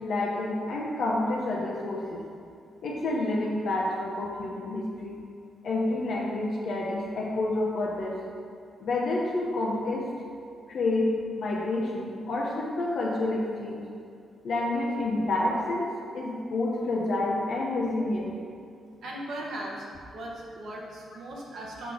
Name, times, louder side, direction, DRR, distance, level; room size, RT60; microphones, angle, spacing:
voice 1, 0.0-2.2 2.8-5.2 5.6-8.2 8.8-10.1 10.7-13.8 14.4-18.3, left 2 dB, 65° left, -3 dB, 1.0 m, -29 dB
voice 2, 19.0-19.8 20.1-21.9, right 1 dB, 75° right, -2 dB, 1.5 m, -38 dB
6.5 x 4.0 x 6.4 m, 2.4 s
cardioid pair, 95°, 0 cm